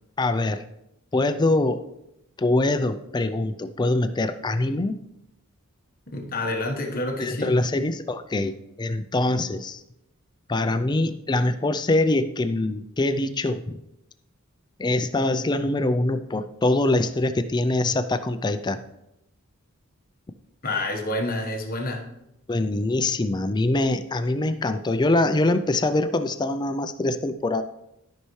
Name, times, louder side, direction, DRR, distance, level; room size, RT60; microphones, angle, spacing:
voice 1, 0.2-0.6 1.1-1.8 2.4-5.0 7.2-9.8 10.5-13.8 14.8-18.8 22.5-27.6, left 2 dB, 20° left, 10 dB, 0.4 m, -24 dB
voice 2, 6.1-7.6 20.6-22.1, left 2 dB, 40° left, 2 dB, 1.3 m, -28 dB
13.0 x 5.6 x 3.2 m, 0.84 s
head